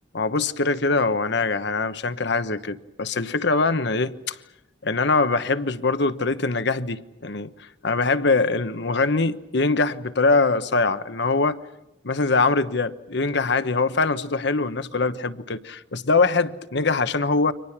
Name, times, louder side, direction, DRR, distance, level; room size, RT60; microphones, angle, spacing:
voice 1, 0.1-4.4 4.8-7.5 7.8-11.6 12.0-17.5, left 3 dB, 70° left, 1.1 m, -23 dB
29.5 x 25.0 x 6.0 m
head